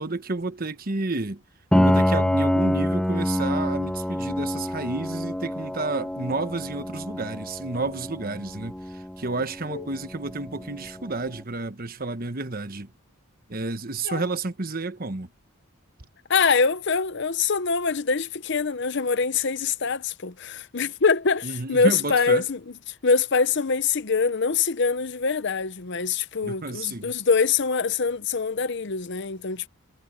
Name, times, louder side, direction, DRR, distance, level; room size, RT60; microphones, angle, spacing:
voice 1, 0.0-1.4 1.7-12.9 13.5-15.3 21.4-22.4 26.4-27.1, right 3 dB, 45° right, 1.2 m, -31 dB
Piano, 1.7-11.3, equal, 5° left, 0.3 m, -27 dB
voice 2, 16.3-22.6 23.0-29.7, left 5 dB, 55° left, 0.8 m, -24 dB
head